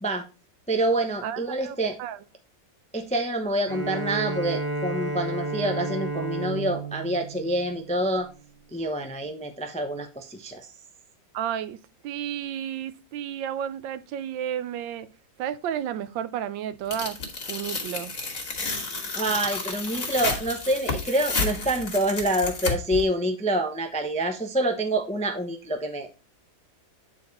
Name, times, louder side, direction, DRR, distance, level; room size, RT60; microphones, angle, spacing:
voice 1, 0.7-2.0 2.9-8.3 8.7-10.7 19.1-26.3, right 1 dB, 10° left, 0.4 m, -27 dB
voice 2, 1.2-2.2 11.3-11.8 12.0-15.1 15.4-17.2 17.5-18.2, right 9 dB, 80° right, 1.4 m, -32 dB
Bowed string instrument, 3.7-8.4, right 3 dB, 25° right, 1.9 m, -32 dB
Tearing, 16.9-23.0, left 3 dB, 45° left, 2.2 m, -31 dB
8.8 x 4.6 x 4.0 m
omnidirectional pair, 2.0 m